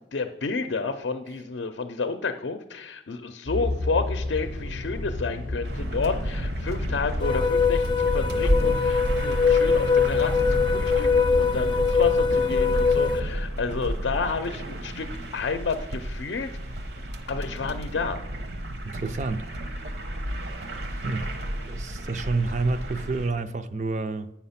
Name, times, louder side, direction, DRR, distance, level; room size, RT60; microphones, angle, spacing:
voice 1, 0.1-16.5 17.3-18.2, left 4 dB, 75° left, 0.5 m, -30 dB
sound 1, 3.5-13.1, left 2 dB, 90° right, 2.3 m, -32 dB
sound 2, 5.6-23.3, equal, 65° right, 0.9 m, -32 dB
sound 3, 7.2-13.2, left 5 dB, 25° left, 0.5 m, -22 dB
voice 2, 18.8-19.8 20.9-21.3 21.6-24.3, right 3 dB, 40° right, 0.4 m, -29 dB
8.6 x 5.9 x 5.7 m
head